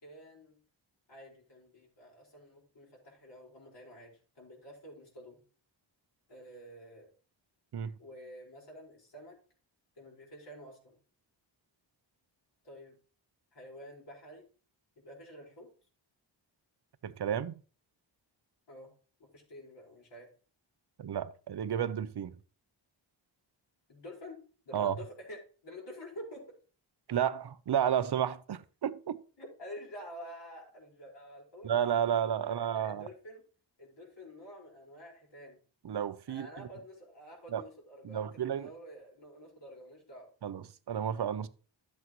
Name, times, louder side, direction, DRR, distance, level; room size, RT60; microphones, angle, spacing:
voice 1, 0.0-0.6 1.1-5.4 6.3-7.1 8.0-9.4 10.0-11.0 12.6-13.0 13.5-14.4 15.0-15.7 18.7-18.9 19.2-20.3 23.9-24.4 24.6-26.6 29.4-31.7 32.4-33.4 33.8-35.6 36.3-40.3, equal, 65° left, 5.2 m, -49 dB
voice 2, 17.0-17.6 21.0-22.3 24.7-25.0 27.1-29.2 31.6-33.1 35.8-36.7 37.5-37.6 38.0-38.7 40.4-41.5, right 9 dB, 60° right, 0.7 m, -32 dB
12.0 x 8.1 x 3.1 m
wide cardioid pair, 100°, 46 cm